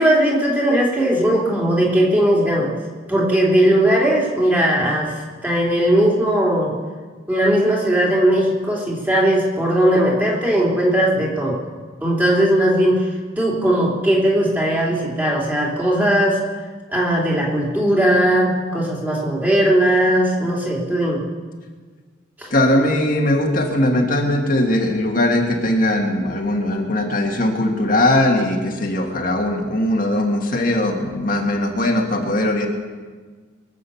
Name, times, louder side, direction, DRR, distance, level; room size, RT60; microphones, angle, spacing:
voice 1, 0.0-2.7 3.1-6.7 7.3-11.6 12.0-13.1 13.4-16.4 16.9-21.2 22.4-22.5, right 1 dB, 10° right, -4 dB, 3.2 m, -18 dB
voice 2, 22.5-32.7, left 1 dB, 45° left, 1 dB, 1.8 m, -19 dB
23.5 x 8.3 x 7.0 m, 1.5 s
head